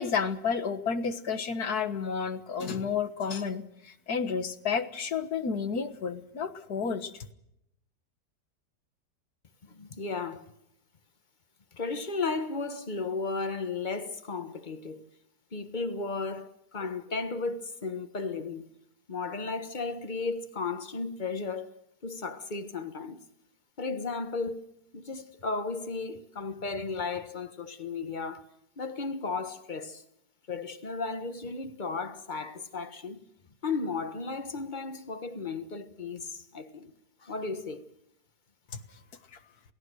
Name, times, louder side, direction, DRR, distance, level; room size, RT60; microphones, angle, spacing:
voice 1, 0.0-7.3 38.7-38.8, left 6 dB, 65° left, 1.9 m, -31 dB
voice 2, 9.6-10.5 11.7-15.1 15.5-18.7 19.1-21.7 22.0-23.2 23.8-24.6 24.9-28.5 28.8-30.0 30.5-33.2 33.6-36.9 37.2-37.9, left 4 dB, 30° left, 1.4 m, -34 dB
28.0 x 18.0 x 6.4 m
omnidirectional pair, 1.8 m